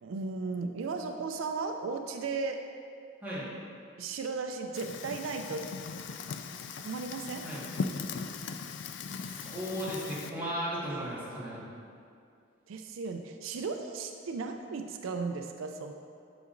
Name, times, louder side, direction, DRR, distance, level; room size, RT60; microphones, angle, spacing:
voice 1, 0.0-2.6 4.0-5.6 6.8-7.4 12.7-15.9, right 4 dB, 80° right, 5 dB, 0.4 m, -35 dB
Fire, 4.7-10.3, left 5 dB, 60° left, 0.3 m, -39 dB
voice 2, 9.2-11.7, equal, 10° right, -9 dB, 1.5 m, -36 dB
8.1 x 6.0 x 2.5 m, 2.4 s
head